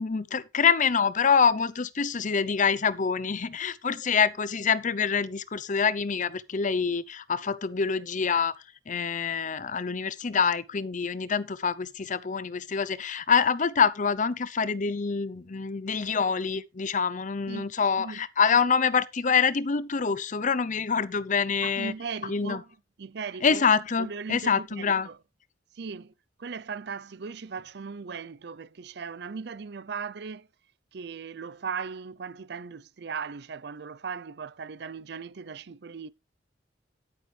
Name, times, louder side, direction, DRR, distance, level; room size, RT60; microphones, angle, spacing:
voice 1, 0.0-8.5 8.9-21.9 22.3-22.6 23.4-25.1, left 6 dB, 45° left, 0.7 m, -26 dB
voice 2, 17.5-18.3 21.6-23.6 24.0-25.2 25.7-26.1 26.4-30.5 30.9-36.1, right 5 dB, 65° right, 0.6 m, -38 dB
10.5 x 9.6 x 3.3 m
head